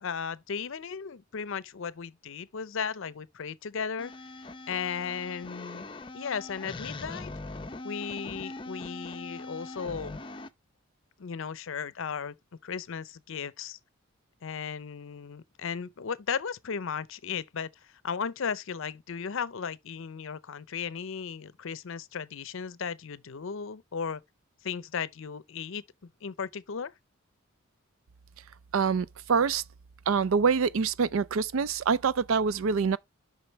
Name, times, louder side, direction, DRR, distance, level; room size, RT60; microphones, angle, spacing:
voice 1, 0.0-4.1 4.7-5.8 6.1-7.3 7.8-10.2 11.2-12.3 12.6-13.8 14.4-24.2 24.6-26.9, left 6 dB, 65° left, 0.6 m, -36 dB
sound 1, 4.0-10.5, left 2 dB, 25° left, 0.6 m, -41 dB
voice 2, 28.7-29.6 30.1-33.0, right 5 dB, 70° right, 0.4 m, -25 dB
7.8 x 5.8 x 3.1 m
head